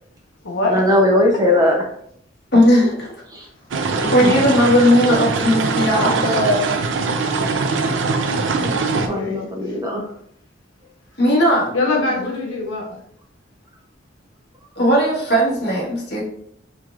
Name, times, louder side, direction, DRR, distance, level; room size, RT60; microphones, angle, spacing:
voice 1, 0.7-1.9 3.3-3.5 4.0-4.4 8.6-10.1, left 1 dB, 20° right, 0 dB, 0.6 m, -19 dB
voice 2, 2.5-3.1 4.1-6.4 11.2-11.7 14.8-16.2, equal, 55° left, -4 dB, 1.4 m, -16 dB
sound 1, 3.7-9.1, right 4 dB, 75° right, 0.5 m, -22 dB
voice 3, 5.8-6.7 9.1-9.4 11.7-12.9, left 2 dB, 90° left, 0 dB, 1.0 m, -22 dB
4.6 x 3.5 x 2.4 m, 0.68 s
head